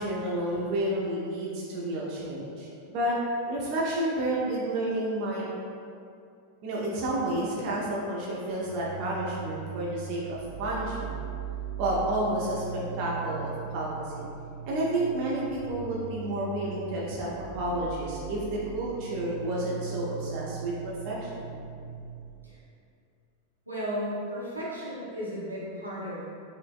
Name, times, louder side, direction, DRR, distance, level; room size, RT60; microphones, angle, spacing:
voice 1, 0.0-3.2 3.5-5.5 6.6-11.2 11.8-14.3 14.6-21.6, right 1 dB, 40° right, -5 dB, 0.4 m, -30 dB
sound 1, 8.6-22.3, right 6 dB, 75° left, 0.5 m, -39 dB
voice 2, 23.7-26.2, equal, 85° right, -8 dB, 0.7 m, -34 dB
3.8 x 2.1 x 2.2 m, 2.5 s
figure-of-eight pair, 90°, 0 cm